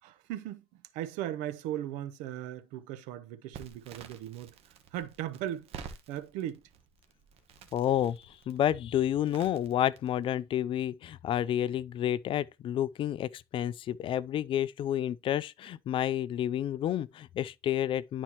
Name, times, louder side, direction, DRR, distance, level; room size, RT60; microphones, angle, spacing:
voice 1, 0.0-4.5 4.9-6.6, right 12 dB, 80° right, 0.8 m, -38 dB
Crackle, 3.5-10.3, right 7 dB, 55° right, 1.2 m, -50 dB
voice 2, 7.7-18.2, left 11 dB, 45° left, 0.4 m, -30 dB
11.0 x 4.3 x 2.9 m
cardioid pair, 115°, 12 cm